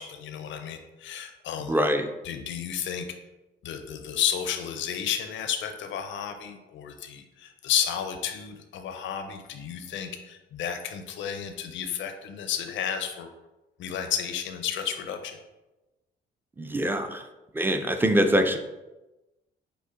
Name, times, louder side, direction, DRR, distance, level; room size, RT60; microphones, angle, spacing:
voice 1, 0.0-1.7 2.2-3.1 3.6-13.3 13.8-15.4, left 9 dB, 70° left, 7 dB, 0.5 m, -32 dB
voice 2, 1.6-2.1 16.6-17.2 17.5-18.6, equal, 10° right, 7 dB, 0.4 m, -24 dB
5.3 x 2.1 x 3.6 m, 1.1 s
cardioid pair, 90°, 20 cm